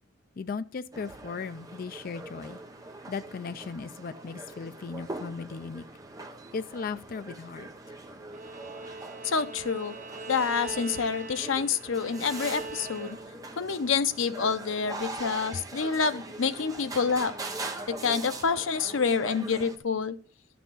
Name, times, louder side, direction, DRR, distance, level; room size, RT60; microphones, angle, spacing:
voice 1, 0.4-2.6 3.1-5.8 6.5-7.7, left 5 dB, 45° left, 12 dB, 0.4 m, -37 dB
sound 1, 0.9-19.8, right 2 dB, 20° right, 1.0 m, -42 dB
Bowed string instrument, 8.3-13.5, right 3 dB, 40° right, 0.9 m, -42 dB
voice 2, 9.2-9.9 10.3-13.2 13.6-17.3 17.9-20.2, left 5 dB, 80° left, 11 dB, 0.7 m, -28 dB
12.0 x 5.9 x 3.9 m, 0.39 s
head